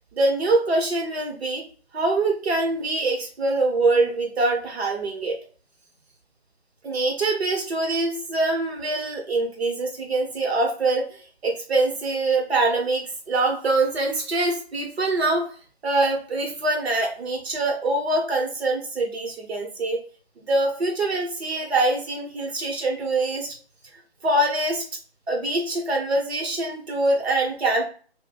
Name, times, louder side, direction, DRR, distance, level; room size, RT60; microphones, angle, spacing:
voice 1, 0.1-1.6 1.9-5.4 6.8-15.4 15.8-20.0 20.5-23.5 24.2-24.8 25.3-27.9, right 2 dB, 75° right, 1 dB, 1.3 m, -24 dB
2.5 x 2.3 x 4.0 m, 0.41 s
figure-of-eight pair, 140°, 32 cm